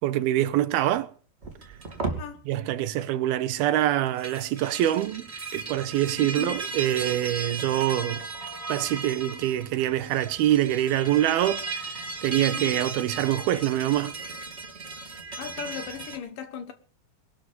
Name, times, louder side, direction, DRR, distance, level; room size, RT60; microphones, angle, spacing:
voice 1, 0.0-1.1 2.5-8.2 8.7-14.1, right 13 dB, 75° right, 2.6 m, -25 dB
sound 1, 1.4-2.2 4.1-16.2, right 4 dB, 20° right, 2.3 m, -36 dB
voice 2, 2.0-2.5 6.1-6.5 12.4-12.8 15.4-16.7, left 8 dB, 65° left, 2.6 m, -38 dB
21.0 x 11.5 x 5.4 m
omnidirectional pair, 4.6 m